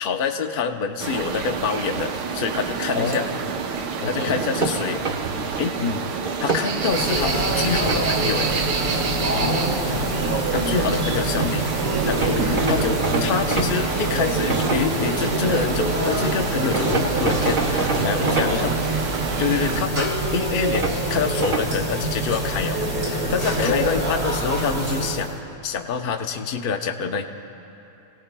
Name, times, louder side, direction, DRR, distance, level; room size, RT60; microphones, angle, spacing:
voice 1, 0.0-3.2 3.7-5.0 5.6-5.7 6.4-8.5 10.5-11.7 12.1-19.0 19.4-25.4 25.6-27.2, left 6 dB, 50° left, 4 dB, 0.6 m, -26 dB
sound 1, 1.0-19.8, right 6 dB, 85° right, 1.4 m, -29 dB
voice 2, 2.9-3.4 4.0-4.5 5.8-6.1 9.3-10.3 13.1-13.4 18.1-18.7 23.6-24.1, left 4 dB, 70° left, 4 dB, 1.5 m, -28 dB
sound 2, 4.2-5.6 6.2-7.0 7.5-8.0 11.1-11.2 11.4-11.6 12.1-15.6 16.7-18.5 20.7-21.7, right 3 dB, 35° right, 1.0 m, -27 dB
sound 3, 6.8-25.4, right 2 dB, 60° right, 2.7 m, -25 dB
28.0 x 17.5 x 2.2 m, 2.9 s
omnidirectional pair, 1.7 m